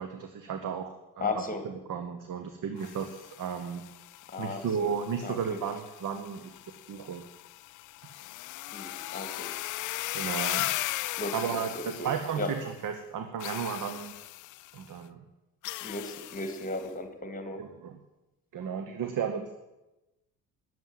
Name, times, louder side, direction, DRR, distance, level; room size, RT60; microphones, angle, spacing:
voice 1, 0.0-1.3 1.6-3.8 4.4-6.6 6.9-7.3 10.1-10.7 11.3-14.1 14.7-15.2 17.6-18.0 18.5-19.5, right 7 dB, 40° right, 7 dB, 1.2 m, -34 dB
voice 2, 1.2-1.6 4.3-4.9 5.2-5.6 8.7-9.5 10.0-10.3 11.2-11.4 11.7-12.1 12.4-12.5 15.8-17.6, left 2 dB, 15° left, 7 dB, 2.1 m, -36 dB
sound 1, 2.8-12.8 13.4-14.8 15.6-16.9, left 17 dB, 40° left, 0.5 m, -38 dB
13.0 x 7.7 x 7.5 m, 1.0 s
figure-of-eight pair, 50°, 49 cm